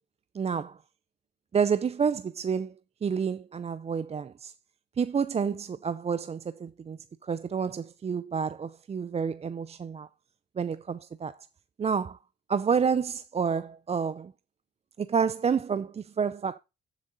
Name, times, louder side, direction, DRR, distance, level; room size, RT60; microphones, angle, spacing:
voice 1, 0.3-0.8 1.5-2.7 3.0-4.5 5.0-10.1 10.6-11.4 11.8-12.2 12.5-14.3 15.0-16.6, right 6 dB, 30° right, 0.5 m, -29 dB
11.5 x 7.4 x 4.0 m
cardioid pair, 90°, 20 cm